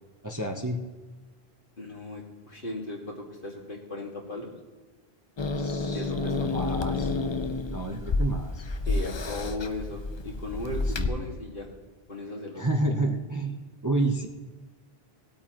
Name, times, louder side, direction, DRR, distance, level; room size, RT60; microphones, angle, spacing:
voice 1, 0.2-0.8 5.6-6.1 6.4-7.1 7.7-8.7 10.9-11.1 12.6-13.6 13.8-14.3, right 2 dB, 20° right, 2 dB, 0.8 m, -29 dB
voice 2, 1.8-4.5 5.9-6.6 6.9-7.1 8.9-11.7 12.1-12.6, left 1 dB, 55° left, -1 dB, 2.1 m, -37 dB
Growling / Hiss, 5.4-11.1, left 3 dB, 35° left, 0.5 m, -30 dB
18.5 x 8.7 x 3.0 m, 1.3 s
omnidirectional pair, 1.0 m